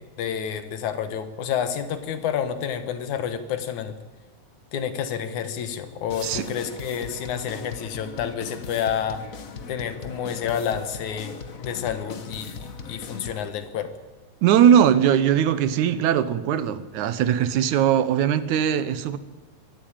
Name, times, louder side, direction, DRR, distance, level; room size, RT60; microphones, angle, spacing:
voice 1, 0.0-4.0 4.7-9.2 9.7-13.9, left 8 dB, 80° left, 10 dB, 2.8 m, -29 dB
sound 1, 6.1-13.5, left 5 dB, 55° left, 0.9 m, -39 dB
voice 2, 14.4-19.2, right 9 dB, 80° right, 14 dB, 2.4 m, -20 dB
22.5 x 14.5 x 8.9 m, 1.2 s
omnidirectional pair, 3.4 m